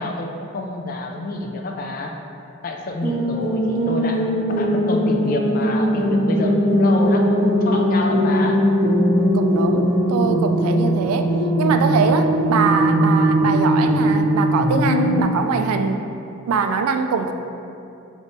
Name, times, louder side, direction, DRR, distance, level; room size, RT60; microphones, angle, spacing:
voice 1, 0.0-2.1 2.6-4.2 4.6-8.6, left 2 dB, 40° left, 2 dB, 0.3 m, -28 dB
sound 1, 3.0-15.2, equal, 5° left, 1.2 m, -19 dB
voice 2, 9.3-11.3 11.6-16.1 16.5-17.3, right 5 dB, 85° right, 7 dB, 0.3 m, -23 dB
5.1 x 3.1 x 2.6 m, 2.6 s
head